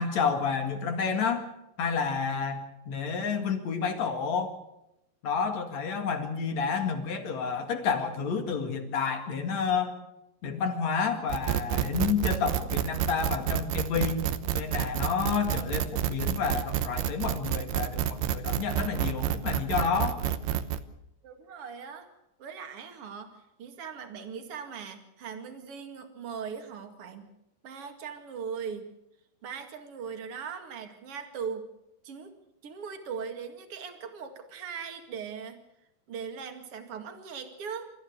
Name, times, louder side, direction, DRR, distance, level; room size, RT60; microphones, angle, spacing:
voice 1, 0.0-1.4 1.8-4.5 5.2-9.9 10.4-14.3 14.5-20.2, left 6 dB, 50° left, 6 dB, 2.3 m, -30 dB
sound 1, 11.3-20.8, right 11 dB, 90° right, 2.2 m, -29 dB
voice 2, 21.2-22.1 22.4-27.3 27.6-28.9 29.4-31.7 32.0-32.4 32.6-35.6 36.1-37.9, right 6 dB, 50° right, 6 dB, 1.8 m, -39 dB
27.5 x 14.5 x 8.2 m, 0.87 s
omnidirectional pair, 6.0 m